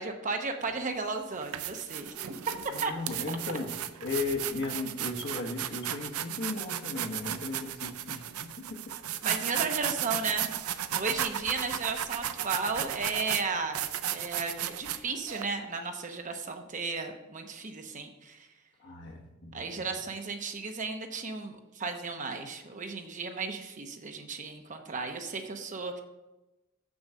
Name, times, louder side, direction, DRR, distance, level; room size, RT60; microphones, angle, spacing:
voice 1, 0.0-2.4 2.8-2.9 3.3-3.4 9.2-10.5 10.9-13.8 14.1-18.5 19.5-26.0, right 4 dB, 35° right, 5 dB, 0.9 m, -34 dB
sound 1, 0.6-0.8 1.3-15.4, right 11 dB, 80° right, 0.5 m, -35 dB
voice 2, 2.7-3.7 4.0-8.9 18.8-19.9, left 3 dB, 55° left, 1 dB, 1.4 m, -36 dB
7.1 x 6.3 x 6.3 m, 1.0 s
head